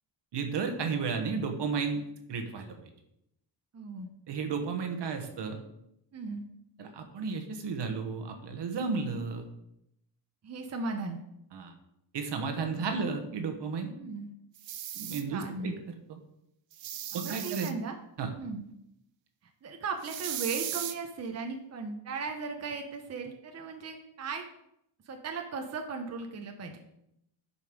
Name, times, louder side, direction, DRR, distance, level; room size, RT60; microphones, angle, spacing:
voice 1, 0.3-2.0 2.3-2.8 4.3-5.6 6.8-9.5 11.5-11.7 12.1-13.9 14.9-15.7 16.1-16.2 17.1-17.7 18.2-18.3, right 5 dB, 65° right, 5 dB, 1.2 m, -33 dB
voice 2, 3.7-4.1 6.1-6.5 10.4-11.2 12.8-13.1 13.9-14.3 15.3-15.8 17.1-18.0 18.4-18.7 19.6-24.5 25.1-26.8, right 4 dB, 35° right, 4 dB, 0.7 m, -37 dB
sound 1, 14.6-15.2 16.7-17.7 20.0-20.9, right 11 dB, 85° right, 0.8 m, -37 dB
7.0 x 5.3 x 5.1 m, 0.80 s
wide cardioid pair, 145°, 44 cm